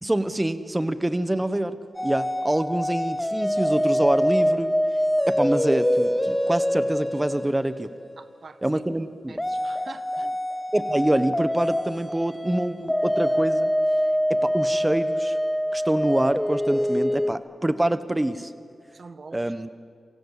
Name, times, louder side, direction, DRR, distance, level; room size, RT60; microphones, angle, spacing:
voice 1, 0.0-4.7 5.3-7.9 8.6-9.4 10.7-13.7 14.3-15.4 15.7-18.5 19.3-19.7, right 1 dB, 10° right, 13 dB, 1.2 m, -25 dB
sound 1, 2.0-8.2 9.4-17.3, equal, 5° left, 0.7 m, -25 dB
voice 2, 8.2-8.8 9.3-10.4 18.9-19.5, right 4 dB, 50° right, 12 dB, 1.5 m, -45 dB
27.5 x 25.0 x 8.4 m, 2.3 s
wide cardioid pair, 140°, 0 cm